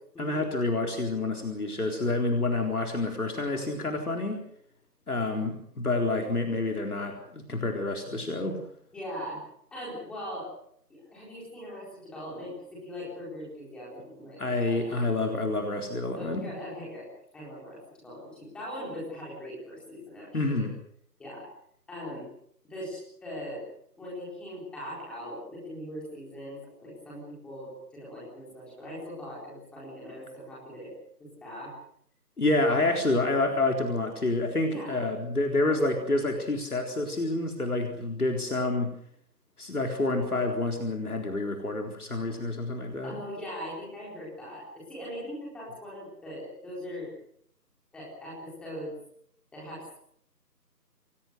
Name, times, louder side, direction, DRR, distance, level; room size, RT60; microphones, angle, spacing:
voice 1, 0.2-4.5 5.1-8.6 14.4-16.5 20.3-20.7 32.4-38.9 39.6-43.1, left 2 dB, 60° left, 2 dB, 4.1 m, -28 dB
voice 2, 8.9-9.4 9.7-10.5 10.9-15.2 16.2-17.1 17.3-20.7 21.2-21.5 21.9-22.3 22.6-23.6 24.0-30.9 31.2-31.7 34.7-35.0 43.0-47.1 47.9-48.9 49.5-49.9, equal, ahead, -7 dB, 4.2 m, -40 dB
28.0 x 18.0 x 6.6 m, 0.68 s
figure-of-eight pair, 165°, 50 cm